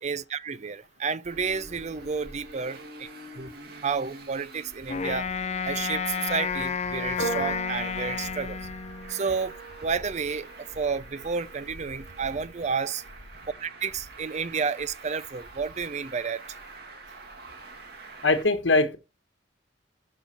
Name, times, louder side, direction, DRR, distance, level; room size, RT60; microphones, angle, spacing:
voice 1, 0.0-3.1 3.4-3.5 3.8-5.3 5.6-8.6 9.1-9.5 9.8-13.0 13.6-16.4, right 5 dB, 40° right, 0.5 m, -31 dB
Traffic noise roadway noise, 1.2-18.4, right 2 dB, 60° right, 2.3 m, -46 dB
Wind instrument woodwind instrument, 4.9-9.3, left 5 dB, 35° left, 0.6 m, -31 dB
sound 1, 7.2-13.5, right 1 dB, 55° left, 4.2 m, -40 dB
voice 2, 18.2-19.0, left 3 dB, 85° left, 1.4 m, -21 dB
11.5 x 5.7 x 4.4 m
head